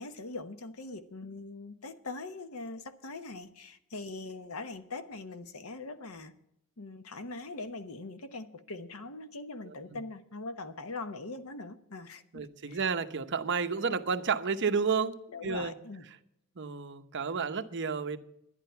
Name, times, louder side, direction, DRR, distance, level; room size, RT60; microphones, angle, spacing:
voice 1, 0.0-6.3 6.8-12.8 15.3-16.1, left 3 dB, 75° left, 1.0 m, -42 dB
voice 2, 9.6-10.0 12.3-15.2 15.4-15.7 16.6-18.2, right 5 dB, 55° right, 0.8 m, -31 dB
11.0 x 10.5 x 5.6 m
head